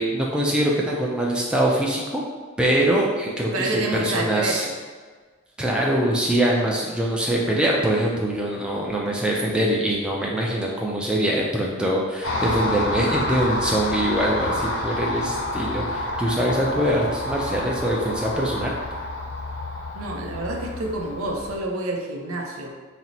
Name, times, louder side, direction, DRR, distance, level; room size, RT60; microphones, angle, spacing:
voice 1, 0.0-2.2 2.6-4.7 5.6-18.7, right 1 dB, 5° right, -3 dB, 0.3 m, -23 dB
voice 2, 3.3-4.7 19.9-22.7, right 2 dB, 85° right, 1 dB, 0.6 m, -28 dB
Car passing by, 12.2-21.6, left 2 dB, 75° left, 0.6 m, -29 dB
4.3 x 2.0 x 3.9 m, 1.4 s
head